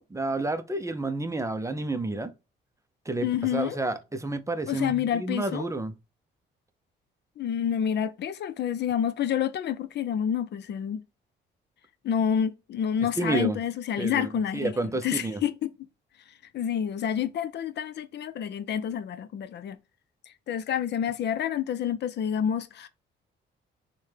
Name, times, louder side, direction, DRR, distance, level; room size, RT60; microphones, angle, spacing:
voice 1, 0.0-2.3 3.1-5.9 13.2-13.6 14.0-15.4, right 2 dB, 15° right, 0.5 m, -30 dB
voice 2, 3.2-3.8 4.7-5.6 7.4-11.0 12.0-14.7 15.0-15.7 16.5-19.8 20.3-22.9, left 9 dB, 60° left, 0.5 m, -28 dB
6.3 x 2.2 x 3.3 m
cardioid pair, 90°, 20 cm